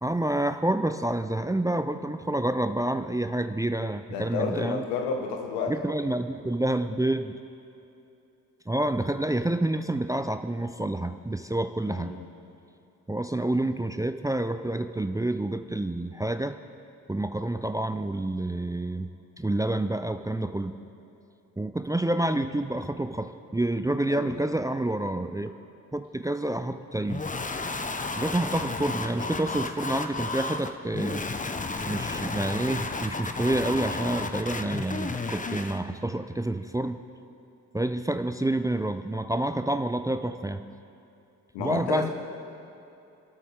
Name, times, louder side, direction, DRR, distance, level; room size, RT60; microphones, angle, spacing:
voice 1, 0.0-4.8 5.7-7.3 8.7-12.1 13.1-16.6 17.1-19.1 19.4-20.8 21.6-25.5 25.9-27.2 28.2-31.2 31.9-37.0 37.7-40.6 41.6-42.1, right 1 dB, 10° right, 9 dB, 0.6 m, -28 dB
voice 2, 4.1-5.7 11.8-12.2 24.1-24.4 34.6-34.7 41.5-42.1, left 5 dB, 70° left, 3 dB, 1.7 m, -31 dB
sound 1, 27.1-35.8, left 3 dB, 15° left, 1.0 m, -32 dB
29.0 x 13.0 x 3.6 m, 2.8 s
figure-of-eight pair, 40°, 45 cm